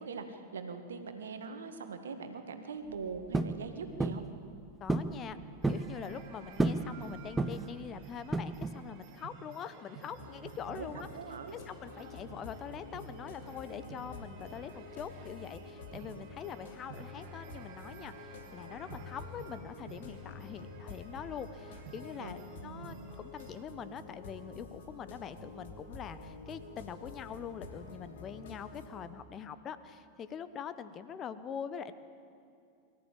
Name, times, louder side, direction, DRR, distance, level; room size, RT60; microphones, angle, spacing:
voice 1, 0.0-4.3 10.7-10.9 11.1-11.5 22.2-22.3 22.6-23.0, right 5 dB, 65° right, 7 dB, 1.8 m, -42 dB
sound 1, 3.3-3.6 4.0-4.3 4.9-5.1 5.4-5.9 6.6-6.9 7.4-7.7 8.3-8.8, right 2 dB, 10° right, 0.9 m, -30 dB
voice 2, 4.8-5.4 5.7-11.1 11.5-31.9, left 8 dB, 30° left, 13 dB, 1.1 m, -44 dB
sound 2, 5.6-23.6, right 7 dB, 45° right, 2.5 m, -53 dB
sound 3, 10.1-28.9, left 3 dB, 60° left, 3.1 m, -48 dB
23.0 x 14.0 x 8.7 m, 2.5 s
figure-of-eight pair, 90°, 0 cm